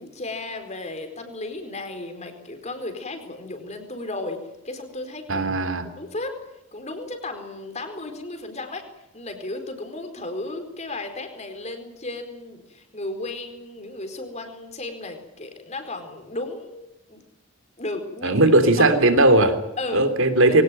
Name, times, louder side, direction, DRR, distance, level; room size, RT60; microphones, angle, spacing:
voice 1, 0.0-5.5 6.0-6.4 6.7-8.9 9.1-17.2 17.8-18.4 18.8-18.9 19.8-20.1 20.5-20.6, left 2 dB, 30° left, 7 dB, 4.3 m, -34 dB
voice 2, 5.3-5.8 18.2-19.6 19.9-20.6, right 2 dB, 65° right, 10 dB, 3.2 m, -17 dB
23.0 x 18.0 x 9.2 m, 0.94 s
head